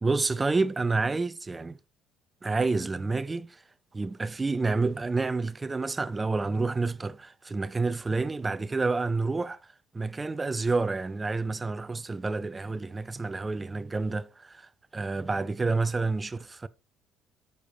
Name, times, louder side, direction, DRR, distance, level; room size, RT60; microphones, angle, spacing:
voice 1, 0.0-1.8 2.4-3.6 3.9-9.6 9.9-14.6 14.9-16.7, right 3 dB, 15° right, 0.4 m, -29 dB
8.9 x 6.8 x 3.3 m
cardioid pair, 135°, 0 cm